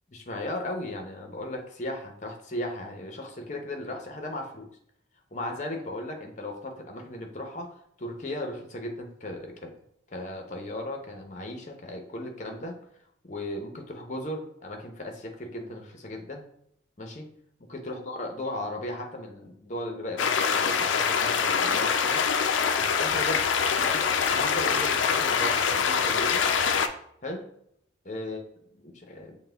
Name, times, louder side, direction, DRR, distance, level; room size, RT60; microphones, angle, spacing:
voice 1, 0.1-4.7 5.3-7.7 8.0-9.7 10.1-12.8 13.2-16.4 17.0-17.3 17.7-22.2 22.8-23.4 23.8-26.4 27.2-27.4 28.0-28.4 28.8-29.4, left 1 dB, 40° left, 3 dB, 0.7 m, -36 dB
sound 1, 20.2-26.9, left 6 dB, 85° left, 0.4 m, -24 dB
5.8 x 2.2 x 3.3 m, 0.71 s
head